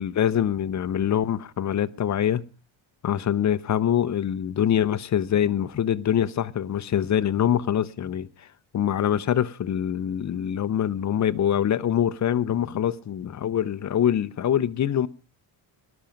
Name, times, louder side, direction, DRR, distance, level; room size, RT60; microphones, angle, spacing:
voice 1, 0.0-2.4 3.0-8.3 8.7-15.1, left 9 dB, 35° left, 0.7 m, -24 dB
18.5 x 12.0 x 5.1 m
cardioid pair, 160°, 49 cm